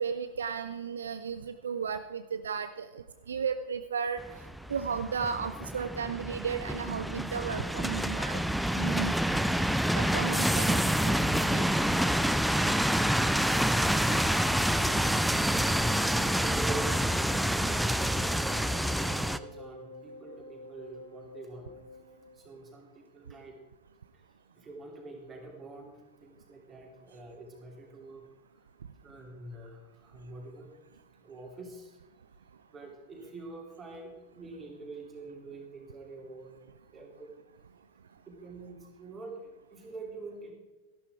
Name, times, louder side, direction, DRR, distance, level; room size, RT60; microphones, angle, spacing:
voice 1, 0.0-2.9 3.3-4.2 4.7-8.4 8.7-9.1 9.9-10.8 11.0-11.1 11.5-11.6, right 6 dB, 70° right, 11 dB, 0.5 m, -34 dB
sound 1, 4.2-19.4, equal, ahead, 0.4 m, -27 dB
voice 2, 13.7-18.5 19.0-21.7 22.3-23.5 24.1-24.2 24.5-28.2 29.0-30.7 31.2-32.0 32.7-36.6 36.9-37.4 38.3-40.5, right 2 dB, 20° right, 0 dB, 3.1 m, -45 dB
Wind instrument woodwind instrument, 15.4-22.4, left 2 dB, 55° left, 2.0 m, -49 dB
13.5 x 11.5 x 3.6 m, 1.2 s
figure-of-eight pair, 90°, 0 cm